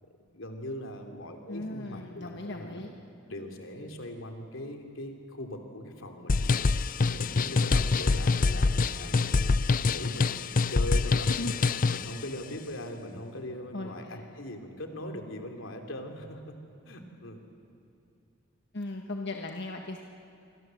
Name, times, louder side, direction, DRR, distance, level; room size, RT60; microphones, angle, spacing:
voice 1, 0.0-2.8 3.3-6.5 7.1-11.3 11.9-16.6 16.9-17.5, left 1 dB, 85° left, 4 dB, 3.0 m, -40 dB
voice 2, 1.5-2.9 11.2-11.5 11.9-12.1 13.7-14.2 18.7-20.0, left 2 dB, 60° left, 2 dB, 1.4 m, -37 dB
sound 1, 6.3-12.1, left 4 dB, 45° left, 0.5 m, -25 dB
28.0 x 25.0 x 7.7 m, 2.6 s
head